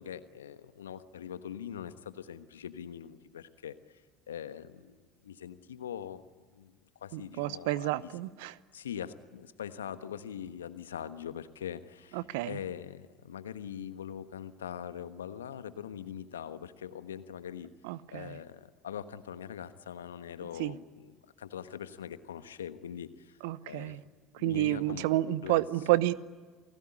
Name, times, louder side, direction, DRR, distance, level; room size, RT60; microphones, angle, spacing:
voice 1, 0.0-4.0 4.3-5.0 5.2-6.2 6.5-6.7 7.0-8.1 8.7-17.7 18.1-23.4 23.7-24.0 24.4-25.0 25.4-25.6 25.9-26.0, left 9 dB, 80° left, 12 dB, 1.3 m, -42 dB
voice 2, 7.1-8.5 12.1-12.6 17.8-18.4 20.6-20.7 23.4-24.0 24.4-26.1, right 17 dB, 70° right, 18 dB, 0.9 m, -30 dB
29.0 x 18.5 x 9.9 m, 1.5 s
figure-of-eight pair, 65°, 0 cm